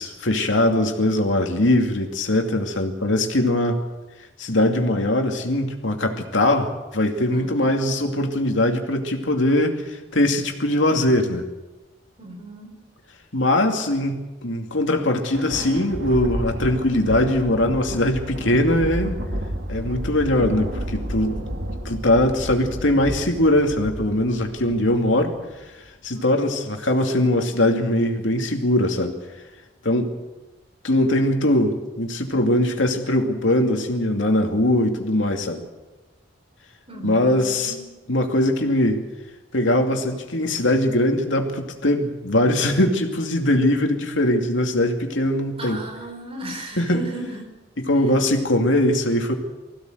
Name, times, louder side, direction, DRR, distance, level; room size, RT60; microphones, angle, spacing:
voice 1, 0.0-3.8 4.4-11.5 13.3-19.2 19.7-21.4 21.8-25.4 26.0-29.2 29.8-30.1 30.8-35.6 37.0-37.7 38.1-39.0 39.5-45.8 46.8-47.1 47.8-49.3, left 1 dB, 85° left, 3 dB, 2.5 m, -21 dB
voice 2, 7.3-7.8 12.2-12.8 26.1-26.3 36.9-37.9 45.6-47.5 49.3-49.4, right 2 dB, 30° right, 2 dB, 4.7 m, -36 dB
Thunder, 15.1-25.7, equal, 70° right, 1.9 m, -31 dB
20.5 x 16.0 x 8.0 m, 1.1 s
head